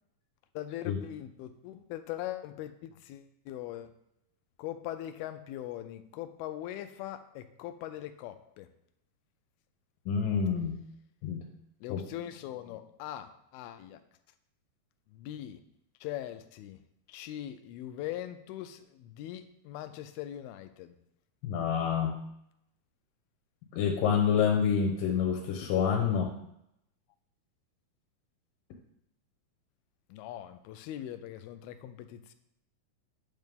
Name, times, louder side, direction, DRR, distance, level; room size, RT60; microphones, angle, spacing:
voice 1, 0.6-3.9 4.6-8.7 11.8-14.0 15.1-15.6 16.0-16.8 17.1-21.0 30.1-32.3, left 12 dB, 90° left, 10 dB, 2.5 m, -41 dB
voice 2, 10.1-10.8 11.2-11.4 11.9-12.0 21.4-22.2 23.7-26.3, left 7 dB, 70° left, 1 dB, 2.5 m, -27 dB
9.2 x 6.5 x 3.6 m, 0.78 s
omnidirectional pair, 4.3 m